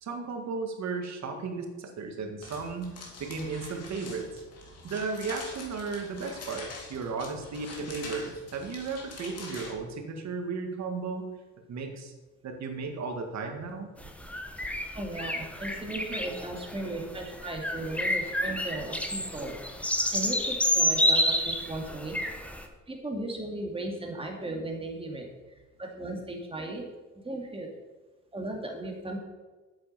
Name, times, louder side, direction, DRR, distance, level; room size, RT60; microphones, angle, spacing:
voice 1, 0.0-2.9 3.2-4.4 4.8-11.3 11.7-12.1 12.4-13.9, right 4 dB, 65° right, 4 dB, 1.9 m, -35 dB
sound 1, 2.4-9.8, left 3 dB, 55° left, 2.8 m, -44 dB
sound 2, 14.0-22.6, equal, 5° left, 1.2 m, -29 dB
voice 2, 14.9-19.5 20.1-22.2 22.9-26.8 27.2-27.7 28.3-29.2, right 2 dB, 20° right, 1 dB, 2.4 m, -36 dB
8.7 x 7.5 x 5.9 m, 1.2 s
cardioid pair, 90°, 30 cm